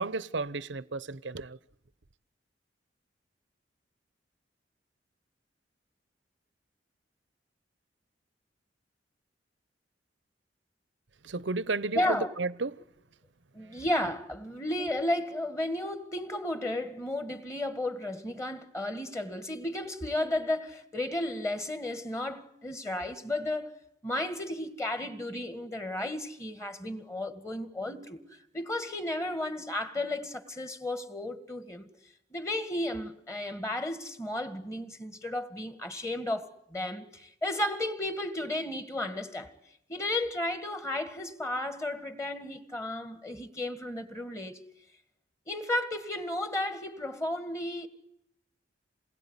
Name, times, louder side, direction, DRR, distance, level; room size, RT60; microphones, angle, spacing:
voice 1, 0.0-1.6 11.2-12.8 13.6-13.8, right 3 dB, 85° right, 1.0 m, -33 dB
voice 2, 11.9-12.3 13.5-23.8 24.0-31.9 32.3-39.5 39.9-44.6 45.5-47.9, left 1 dB, 15° left, 2.0 m, -33 dB
28.0 x 21.0 x 9.9 m
head